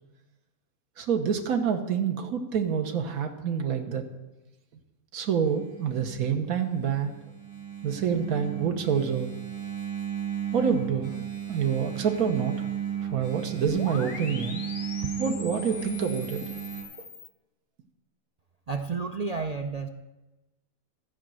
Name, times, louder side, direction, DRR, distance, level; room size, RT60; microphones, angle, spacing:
voice 1, 1.0-4.1 5.1-7.1 7.8-9.3 10.5-12.7 13.0-14.6 15.2-16.5, right 7 dB, 80° right, 4 dB, 1.5 m, -27 dB
Engine, 5.4-16.8, right 9 dB, 40° right, 3.9 m, -35 dB
sound 1, 13.7-17.3, left 5 dB, 55° left, 1.2 m, -41 dB
voice 2, 18.7-19.9, right 4 dB, 60° right, 4 dB, 0.4 m, -31 dB
15.0 x 5.2 x 7.6 m, 1.1 s
omnidirectional pair, 1.5 m